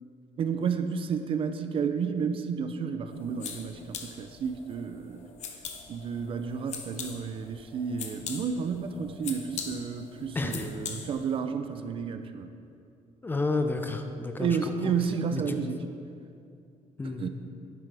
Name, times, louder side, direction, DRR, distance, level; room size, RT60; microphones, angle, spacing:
voice 1, 0.4-5.2 5.9-12.5 14.4-15.8 17.0-17.3, right 6 dB, 45° right, 8 dB, 0.5 m, -31 dB
sound 1, 3.1-11.4, left 6 dB, 60° left, 0.9 m, -42 dB
voice 2, 10.3-10.7 13.2-14.7 15.3-15.6 17.0-17.3, left 3 dB, 15° left, 6 dB, 0.5 m, -31 dB
10.5 x 9.4 x 3.4 m, 2.4 s
cardioid pair, 160°, 13 cm